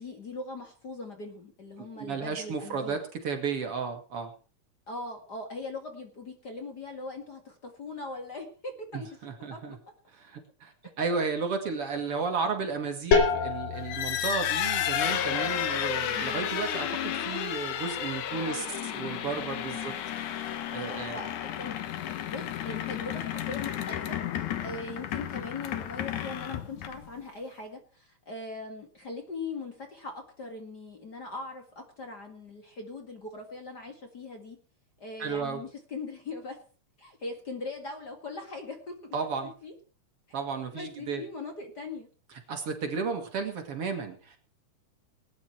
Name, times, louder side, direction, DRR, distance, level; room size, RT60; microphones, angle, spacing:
voice 1, 0.0-3.0 4.9-9.1 9.5-9.8 18.2-18.8 19.7-20.0 20.8-34.6 35.0-36.6 37.0-39.1 39.4-39.7 40.7-42.1, left 3 dB, 35° left, 4 dB, 2.2 m, -40 dB
voice 2, 1.8-4.3 8.9-9.8 10.1-18.7 18.9-20.0 20.7-21.2 35.2-35.6 39.1-39.5 40.3-41.2 42.5-44.4, right 5 dB, 50° right, 5 dB, 2.6 m, -33 dB
sound 1, 13.1-18.6, left 5 dB, 60° left, 3.6 m, -32 dB
sound 2, 13.8-27.2, left 10 dB, 80° left, 2.7 m, -32 dB
19.5 x 10.0 x 4.5 m, 0.38 s
omnidirectional pair, 3.5 m